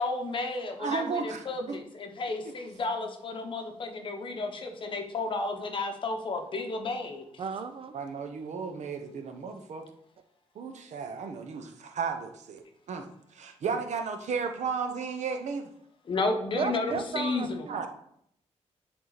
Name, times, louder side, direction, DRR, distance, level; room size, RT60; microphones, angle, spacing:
voice 1, 0.0-7.2 16.0-17.6, left 3 dB, 45° left, 4 dB, 1.0 m, -32 dB
voice 2, 0.8-1.8 7.9-9.9 10.5-13.1 13.3-15.7 17.7-17.9, right 5 dB, 85° right, 6 dB, 0.9 m, -34 dB
voice 3, 7.4-7.9 16.5-17.9, right 6 dB, 50° right, 9 dB, 0.5 m, -34 dB
10.5 x 3.8 x 4.0 m, 0.72 s
wide cardioid pair, 160°, 12 cm